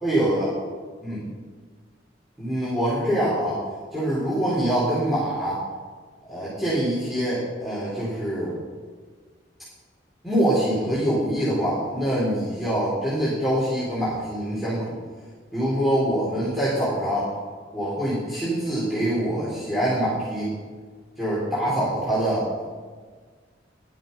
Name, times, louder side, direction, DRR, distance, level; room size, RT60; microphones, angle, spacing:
voice 1, 0.0-0.5 1.0-1.2 2.4-3.6 3.9-5.6 6.2-8.5 10.2-15.0 15.5-17.3 17.7-20.5 21.2-22.7, right 1 dB, ahead, -10 dB, 4.3 m, -24 dB
14.5 x 11.5 x 5.6 m, 1.5 s
head